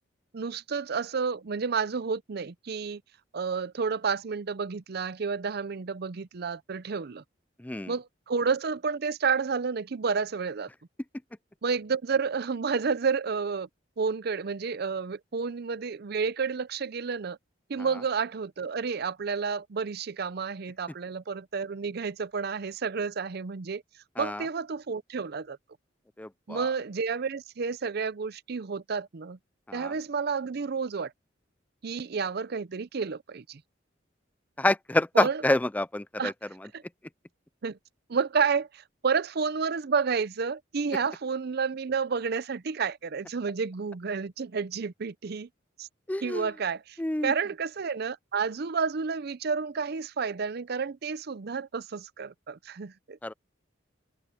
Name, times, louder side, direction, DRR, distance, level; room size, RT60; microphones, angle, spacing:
voice 1, 0.3-3.0 3.3-7.2 7.9-10.7 11.6-13.7 14.0-17.4 17.7-23.8 24.2-25.6 26.5-29.4 29.7-31.1 31.8-33.6 35.2-35.4 36.2-36.3 36.7-36.8 37.6-37.8 38.1-45.5 45.8-45.9 46.2-53.2, right 5 dB, 55° right, 0.6 m, -30 dB
voice 2, 7.6-7.9 24.2-24.5 26.2-26.7 29.7-29.9 34.6-36.3 46.1-46.5 47.0-47.3 53.2-53.3, left 1 dB, 10° left, 0.4 m, -27 dB
head